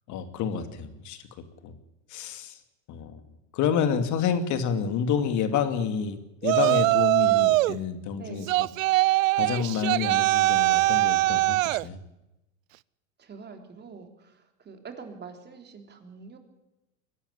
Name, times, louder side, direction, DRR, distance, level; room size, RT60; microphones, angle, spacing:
voice 1, 0.1-1.2 1.6-1.8 2.1-2.6 2.9-3.2 3.5-8.7 9.4-12.0, left 7 dB, 45° left, 9 dB, 2.7 m, -29 dB
Yell, 6.4-7.8 8.5-11.8, right 18 dB, 80° right, 0.6 m, -22 dB
voice 2, 8.1-8.5 13.2-16.4, right 5 dB, 25° right, 5 dB, 3.4 m, -45 dB
22.5 x 12.0 x 9.9 m, 0.95 s
supercardioid pair, 115°, 39 cm